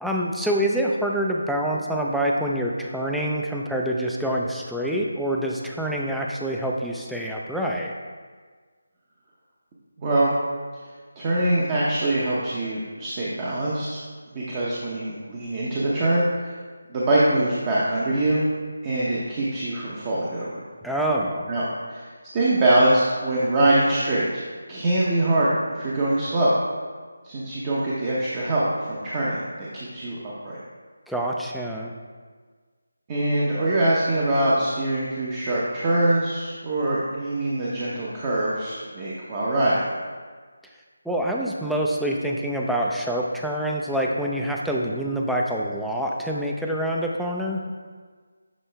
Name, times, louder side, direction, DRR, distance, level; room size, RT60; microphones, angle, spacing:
voice 1, 0.0-7.9 20.8-21.5 31.1-31.9 41.1-47.6, right 1 dB, ahead, -3 dB, 0.4 m, -26 dB
voice 2, 10.0-10.3 11.2-14.0 14.3-16.2 16.9-18.4 18.8-20.6 21.5-22.1 22.3-24.4 24.7-26.5 27.2-30.6 33.1-39.8, right 1 dB, 20° right, -7 dB, 0.7 m, -23 dB
7.3 x 4.3 x 3.4 m, 1.5 s
figure-of-eight pair, 165°, 0 cm